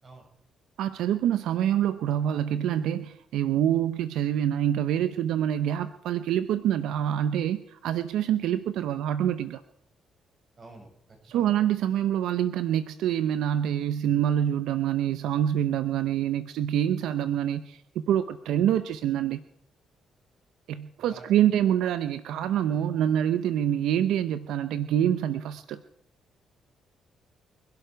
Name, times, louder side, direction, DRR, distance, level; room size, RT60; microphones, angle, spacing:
voice 1, 0.8-9.6 11.3-19.4 20.7-25.8, right 10 dB, 85° right, 12 dB, 0.7 m, -26 dB
voice 2, 10.6-11.6 21.0-21.5, right 3 dB, 35° right, 2 dB, 5.8 m, -49 dB
26.5 x 11.5 x 4.6 m, 0.73 s
cardioid pair, 90°, 0 cm